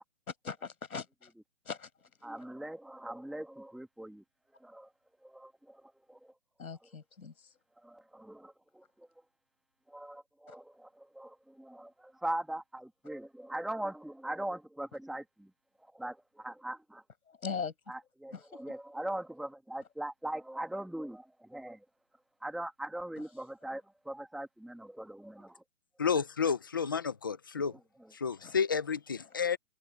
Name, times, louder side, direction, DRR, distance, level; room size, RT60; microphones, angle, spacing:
voice 1, 0.4-1.3 1.6-1.9 6.6-7.5 10.5-10.6 17.3-17.7 18.3-18.7 28.4-28.6, left 5 dB, 85° left, 5.7 m, -40 dB
voice 2, 2.2-4.2 4.5-4.9 5.2-6.3 7.8-9.1 9.9-15.5 15.8-17.0 17.9-21.8 22.4-25.6 28.0-28.1, right 1 dB, ahead, 2.3 m, -41 dB
voice 3, 26.0-27.7 28.1-29.6, left 6 dB, 15° left, 0.5 m, -31 dB
hypercardioid pair, 160°, 41 cm